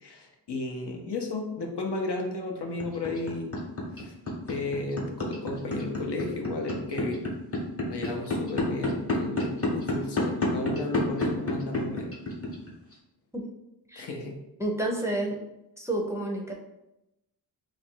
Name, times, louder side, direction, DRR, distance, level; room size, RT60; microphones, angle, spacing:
voice 1, 0.0-3.5 3.9-4.1 4.5-7.2 7.8-12.2 14.0-14.4, left 2 dB, 80° left, 2 dB, 0.8 m, -33 dB
sound 1, 2.8-12.9, left 2 dB, 35° left, 0.9 m, -28 dB
voice 2, 14.6-15.4 15.8-16.5, right 1 dB, 5° right, 0 dB, 0.5 m, -29 dB
3.0 x 2.5 x 4.4 m, 0.92 s
wide cardioid pair, 115°, 40 cm